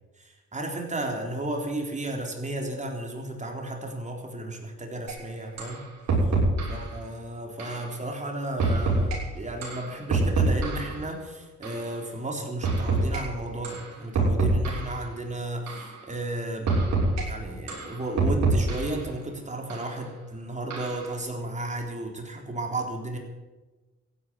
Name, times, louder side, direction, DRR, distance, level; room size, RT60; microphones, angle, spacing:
voice 1, 0.2-5.8 6.7-23.2, right 1 dB, 25° right, 2 dB, 3.9 m, -34 dB
sound 1, 5.1-5.2 5.6-5.8 6.1-6.8 7.6-7.8 8.6-9.2 9.6-11.0 11.6-11.8 12.6-13.2 13.6-13.8 14.1-15.0 15.7-15.9 16.7-17.2 17.7-19.0 19.7-19.9 20.7-21.1, right 3 dB, 60° right, 6.5 m, -25 dB
15.5 x 10.5 x 8.2 m, 1.2 s
cardioid pair, 90°, 30 cm